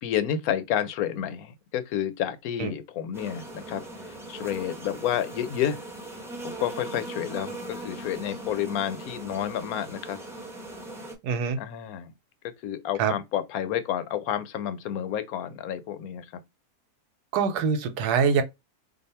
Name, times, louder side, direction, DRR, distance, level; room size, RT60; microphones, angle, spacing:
voice 1, 0.0-5.8 6.4-10.2 11.6-12.1 12.4-16.3, left 10 dB, 70° left, 1.0 m, -30 dB
sound 1, 3.1-11.1, right 1 dB, 5° right, 0.6 m, -39 dB
voice 2, 11.2-11.6 13.0-13.1 17.3-18.4, right 6 dB, 90° right, 1.2 m, -24 dB
2.7 x 2.4 x 4.1 m
omnidirectional pair, 1.7 m